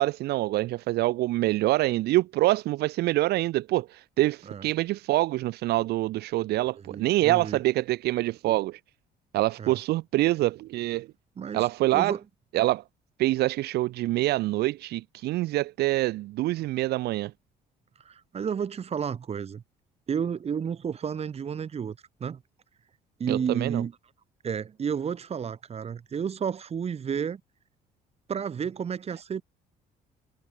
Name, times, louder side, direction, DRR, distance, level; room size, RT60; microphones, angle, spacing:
voice 1, 0.0-8.8 9.3-11.1 11.5-12.1 12.5-12.8 13.2-17.3 23.3-23.8, right 17 dB, 75° right, 0.6 m, -25 dB
voice 2, 6.9-7.6 9.6-9.8 11.4-11.7 11.9-12.2 18.1-19.6 20.1-22.4 23.2-23.9 24.4-27.4 28.3-29.4, right 7 dB, 35° right, 1.9 m, -31 dB
cardioid pair, 110°, 17 cm